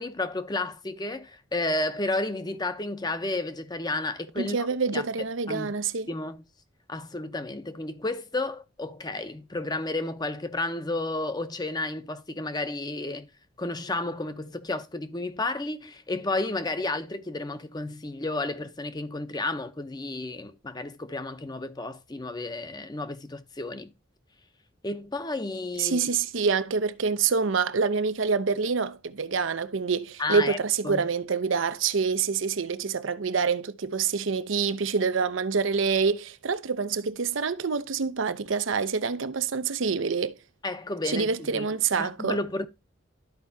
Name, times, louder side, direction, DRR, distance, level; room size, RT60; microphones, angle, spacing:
voice 1, 0.0-4.7 4.9-5.0 5.5-5.7 6.1-6.4 6.9-13.3 13.6-23.9 24.8-26.1 30.2-30.6 30.8-31.0 40.6-41.7 42.0-42.7, left 2 dB, 20° left, 0.7 m, -32 dB
voice 2, 4.4-6.1 25.8-40.4 41.1-42.4, right 5 dB, 70° right, 0.7 m, -26 dB
13.0 x 4.7 x 2.7 m
head